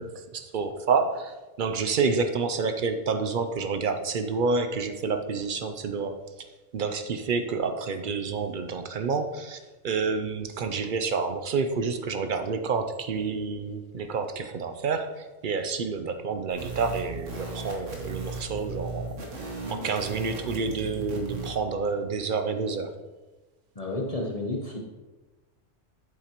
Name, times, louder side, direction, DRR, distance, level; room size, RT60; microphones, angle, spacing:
voice 1, 0.0-6.2 6.7-19.2 19.7-22.9, right 4 dB, 55° right, 8 dB, 0.6 m, -29 dB
sound 1, 16.5-21.6, right 3 dB, 85° right, 1.8 m, -37 dB
voice 2, 19.6-19.9 23.7-24.8, left 2 dB, 35° left, -1 dB, 0.9 m, -32 dB
8.5 x 7.5 x 2.9 m, 1.2 s
omnidirectional pair, 1.3 m